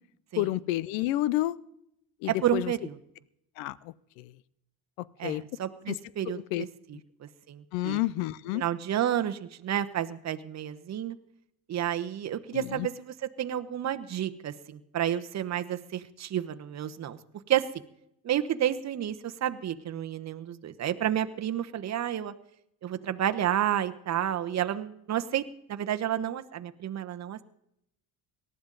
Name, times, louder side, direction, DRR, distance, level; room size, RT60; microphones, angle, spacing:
voice 1, 0.4-1.6 2.2-2.7 3.6-4.3 5.0-5.4 5.9-6.0 6.3-6.7 7.7-8.6 12.5-12.9, left 16 dB, 90° left, 21 dB, 0.6 m, -30 dB
voice 2, 2.3-3.0 5.2-6.7 7.2-8.0 8.5-11.2 11.7-17.2 17.5-17.7 18.2-22.3 22.8-25.4 25.7-27.4, right 11 dB, 40° right, 9 dB, 1.0 m, -30 dB
18.5 x 12.5 x 4.0 m, 0.78 s
supercardioid pair, 90°, 40 cm